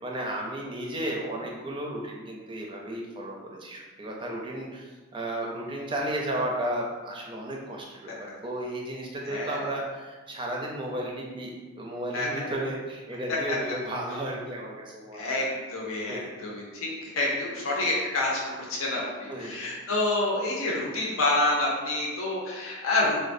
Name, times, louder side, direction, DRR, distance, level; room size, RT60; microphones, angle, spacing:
voice 1, 0.0-3.3 3.6-15.5 16.1-16.3 19.3-19.5, right 1 dB, 25° right, -1 dB, 0.4 m, -34 dB
voice 2, 9.2-9.7 12.1-12.5 15.1-23.2, left 2 dB, 85° left, -3 dB, 0.6 m, -28 dB
4.1 x 2.2 x 2.6 m, 1.3 s
head